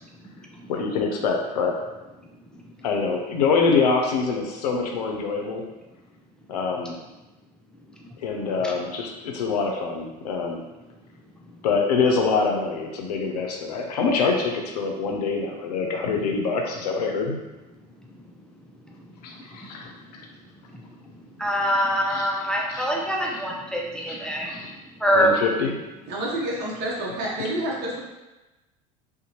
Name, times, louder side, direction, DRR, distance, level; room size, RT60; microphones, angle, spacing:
voice 1, 0.7-1.8 2.8-5.6 6.5-6.9 8.2-10.6 11.6-17.4 19.2-19.9 22.1-22.3 22.7-22.9 23.3-23.4 24.1-24.7 25.1-25.7, left 4 dB, 85° left, 2 dB, 0.5 m, -25 dB
voice 2, 21.4-24.6 25.0-25.3, equal, 5° left, -2 dB, 0.4 m, -24 dB
voice 3, 26.1-28.0, right 1 dB, 55° right, -4 dB, 0.8 m, -28 dB
2.6 x 2.2 x 2.9 m, 1.1 s
hypercardioid pair, 90°, 20 cm